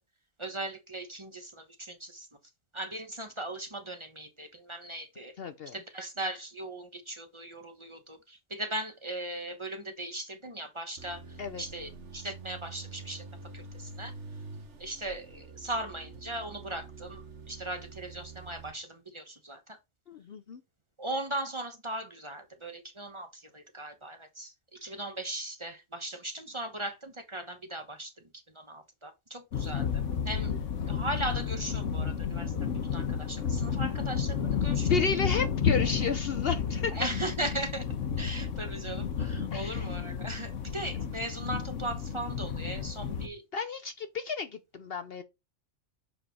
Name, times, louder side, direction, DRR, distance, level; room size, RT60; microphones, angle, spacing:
voice 1, 0.4-2.3 2.7-5.3 5.7-13.3 13.5-14.1 14.8-19.8 21.0-28.1 28.5-30.5 30.8-34.9 36.9-37.8 38.2-43.4, right 1 dB, 25° right, 1.1 m, -38 dB
voice 2, 5.4-5.7 11.4-11.6 20.1-20.6 34.9-37.0 39.5-39.9 43.5-45.2, left 5 dB, 55° left, 0.8 m, -32 dB
sound 1, 11.0-18.7, right 3 dB, 65° right, 1.6 m, -46 dB
sound 2, 29.5-43.3, left 7 dB, 75° left, 1.4 m, -31 dB
7.4 x 4.8 x 4.2 m
omnidirectional pair, 1.3 m